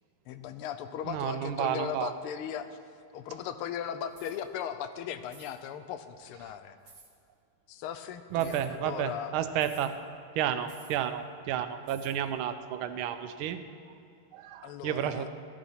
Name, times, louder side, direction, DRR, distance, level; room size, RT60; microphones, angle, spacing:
voice 1, 0.3-2.7 3.1-6.8 7.7-9.3 14.6-15.3, left 9 dB, 90° left, 11 dB, 1.5 m, -38 dB
voice 2, 1.1-2.1 8.3-9.9 10.3-13.6 14.3-15.3, right 10 dB, 75° right, 10 dB, 1.4 m, -31 dB
sound 1, 4.1-4.4 5.3-5.6 6.9-7.1 8.3-8.7 9.6-9.9 10.7-11.0 11.9-12.2, right 4 dB, 40° right, 1.6 m, -54 dB
13.0 x 11.0 x 4.2 m, 2.4 s
omnidirectional pair, 2.4 m